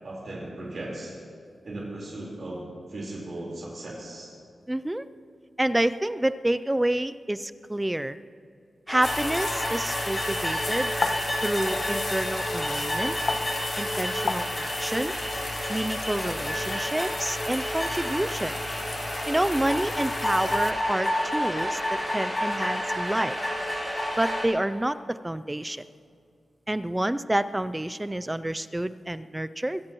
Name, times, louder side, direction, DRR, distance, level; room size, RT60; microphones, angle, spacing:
voice 1, 0.0-1.2 1.6-4.3, right 1 dB, 55° right, -4 dB, 4.2 m, -37 dB
voice 2, 4.7-5.1 5.6-8.2 8.9-10.9 11.4-13.2 13.8-15.1 15.7-18.5 19.3-23.4 24.2-25.9 26.7-29.8, right 1 dB, 10° right, 13 dB, 0.4 m, -28 dB
sound 1, 8.9-24.4, equal, 20° left, 4.7 m, -30 dB
sound 2, 9.0-20.7, left 4 dB, 60° left, 0.7 m, -35 dB
23.5 x 16.5 x 3.1 m, 2.3 s
wide cardioid pair, 115°, 0 cm